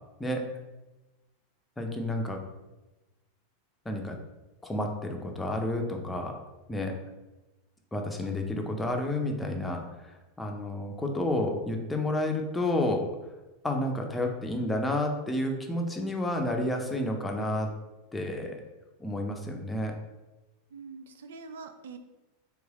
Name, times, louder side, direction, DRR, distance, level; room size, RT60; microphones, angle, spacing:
voice 1, 1.8-2.4 3.9-4.2 4.6-6.4 6.7-6.9 7.9-13.1 13.6-17.7 18.1-18.6 19.0-19.9, left 1 dB, 10° left, 2 dB, 0.6 m, -30 dB
voice 2, 20.7-22.0, right 4 dB, 80° right, 7 dB, 0.4 m, -44 dB
3.2 x 3.0 x 3.6 m, 1.1 s
hypercardioid pair, 100°, 0 cm